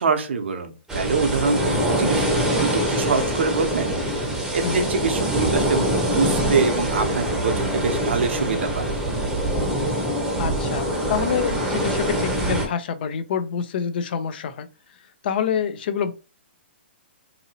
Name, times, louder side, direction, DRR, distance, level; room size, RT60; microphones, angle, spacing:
voice 1, 0.0-3.9 4.5-8.9, right 5 dB, 75° right, 0.7 m, -24 dB
sound 1, 0.9-12.7, right 1 dB, 5° right, 0.7 m, -24 dB
voice 2, 10.4-14.7 15.2-16.1, left 7 dB, 55° left, 0.4 m, -26 dB
2.7 x 2.7 x 2.7 m
hypercardioid pair, 135°, 6 cm